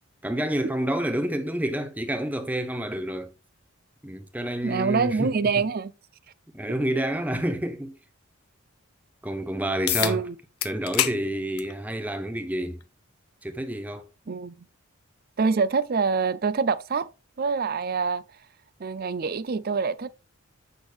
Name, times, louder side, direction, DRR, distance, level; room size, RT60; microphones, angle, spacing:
voice 1, 0.2-3.3 4.0-5.6 6.5-7.9 9.2-10.2 10.6-12.8 13.4-14.1, right 1 dB, 5° right, 0.7 m, -29 dB
voice 2, 4.6-5.9 10.0-10.4 14.3-14.5 15.4-17.1 17.4-18.2 18.8-20.1, right 5 dB, 40° right, 0.4 m, -25 dB
sound 1, 9.9-10.2 10.6-11.2 11.6-11.7 12.8-12.9 17.8-17.9, left 12 dB, 85° left, 0.7 m, -26 dB
8.1 x 6.0 x 3.4 m
head